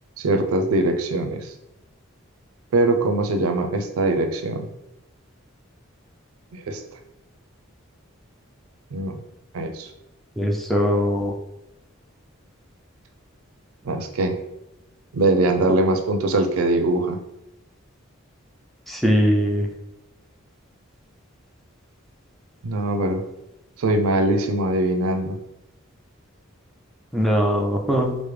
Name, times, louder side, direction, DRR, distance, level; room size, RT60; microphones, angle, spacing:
voice 1, 0.2-1.5 2.7-4.7 6.5-6.8 8.9-9.2 9.5-9.9 13.8-14.3 15.1-17.2 22.6-23.2 23.8-25.4, right 2 dB, 85° right, 6 dB, 0.4 m, -22 dB
voice 2, 10.4-11.3 18.9-19.7 27.1-28.2, equal, ahead, 0 dB, 0.3 m, -21 dB
4.8 x 2.0 x 3.1 m, 0.89 s
head